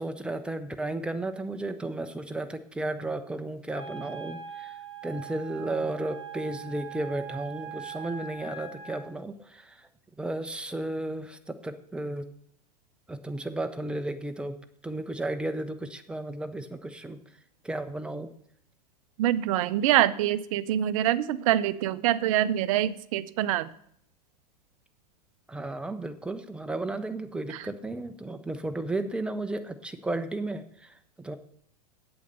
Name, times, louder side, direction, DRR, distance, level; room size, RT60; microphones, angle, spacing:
voice 1, 0.0-9.9 10.2-12.2 13.1-14.5 14.8-17.2 17.6-18.3 25.5-31.4, right 2 dB, 5° right, 8 dB, 0.8 m, -34 dB
Wind instrument woodwind instrument, 3.7-9.1, right 7 dB, 25° left, 4.7 m, -42 dB
voice 2, 19.2-23.7, right 12 dB, 55° right, 15 dB, 0.6 m, -25 dB
8.5 x 8.0 x 6.7 m, 0.69 s
figure-of-eight pair, 95°, 21 cm